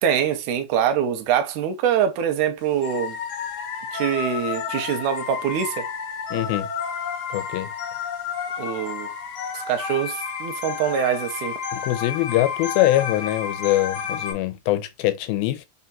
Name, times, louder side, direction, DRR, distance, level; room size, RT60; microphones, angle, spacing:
voice 1, 0.0-3.2 3.9-5.8 8.6-9.1 9.5-11.6, right 8 dB, 80° right, 1.8 m, -24 dB
sound 1, 2.8-14.3, left 6 dB, 65° left, 1.6 m, -31 dB
voice 2, 6.3-6.7 7.3-7.7 11.7-15.6, left 15 dB, 90° left, 2.4 m, -23 dB
5.5 x 2.3 x 2.6 m
omnidirectional pair, 4.1 m